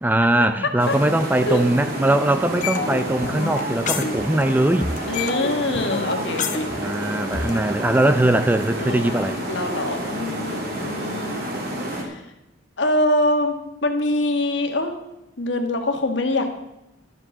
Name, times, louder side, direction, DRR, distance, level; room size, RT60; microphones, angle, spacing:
voice 1, 0.0-4.9 6.8-9.4, right 1 dB, 10° right, 10 dB, 0.4 m, -20 dB
sound 1, 0.8-12.0, right 1 dB, 50° right, 2.6 m, -29 dB
sound 2, 2.6-4.6 4.8-7.6, left 4 dB, 40° left, 0.9 m, -28 dB
voice 2, 5.1-6.7 8.8-9.2 9.5-11.4 11.9-12.2 12.8-13.5 13.8-15.0 15.4-16.5, left 1 dB, 65° left, 5 dB, 1.6 m, -24 dB
12.0 x 7.5 x 6.5 m, 0.92 s
head